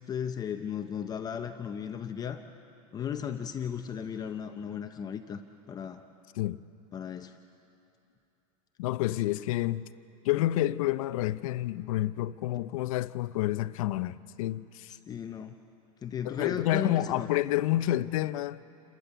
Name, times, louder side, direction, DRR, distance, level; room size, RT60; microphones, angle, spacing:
voice 1, 0.1-2.4 2.9-5.4 5.7-6.0 6.9-7.3 15.1-15.5 16.0-17.3, left 8 dB, 20° left, 0.7 m, -35 dB
voice 2, 8.8-9.9 10.2-14.9 16.2-18.6, left 15 dB, 70° left, 0.6 m, -29 dB
29.0 x 13.5 x 7.0 m
supercardioid pair, 145°, 18 cm